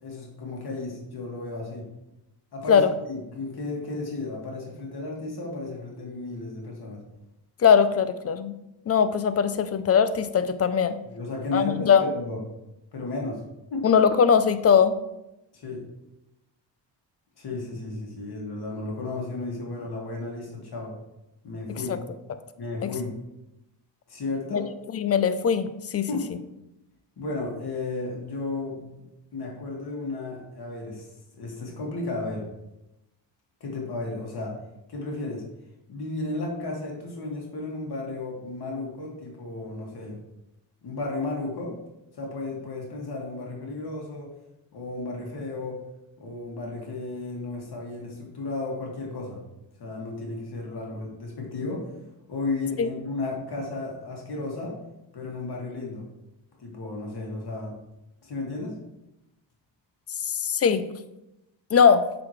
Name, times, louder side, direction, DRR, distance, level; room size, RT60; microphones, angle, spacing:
voice 1, 0.0-1.9 2.5-7.0 11.0-12.4 12.9-13.4 13.7-13.9 15.5-15.9 17.4-20.9 21.4-21.9 22.6-23.2 24.1-24.7 26.1-26.3 27.2-29.0 29.3-32.5 33.6-34.6 34.9-35.4 35.9-40.2 40.8-41.8 42.1-44.3 44.7-45.8 46.2-49.4 49.8-51.9 52.3-54.8 55.1-56.1 56.6-57.8 58.2-58.8, left 2 dB, 55° left, -1 dB, 2.0 m, -33 dB
voice 2, 7.6-8.5 8.9-10.9 11.5-12.0 13.8-15.0 21.9-22.0 22.8-22.9 24.5-24.6 24.9-26.1 52.8-52.9 60.2-60.8 61.7-62.0, left 7 dB, 35° left, 12 dB, 0.5 m, -20 dB
7.4 x 4.2 x 3.1 m, 0.92 s
cardioid pair, 85°, 46 cm